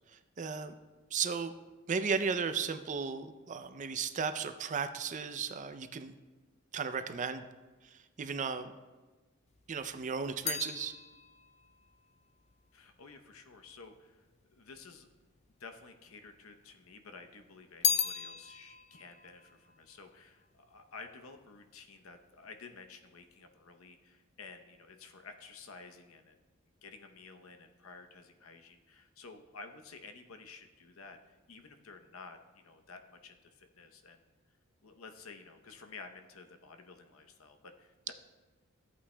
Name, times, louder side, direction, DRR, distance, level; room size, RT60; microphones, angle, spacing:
voice 1, 0.4-0.7 1.1-1.5 1.9-6.2 6.7-7.5 8.2-8.7 9.7-10.9, right 5 dB, 35° right, 10 dB, 0.4 m, -35 dB
sound 1, 9.5-13.9 14.7-15.5 15.8-16.9 17.2-20.8 21.1-21.6, left 7 dB, 30° left, 0.4 m, -37 dB
voice 2, 12.7-15.1 15.6-26.4 26.8-34.2 34.8-38.1, left 4 dB, 85° left, 6 dB, 0.8 m, -52 dB
14.0 x 8.4 x 2.2 m, 1.2 s
head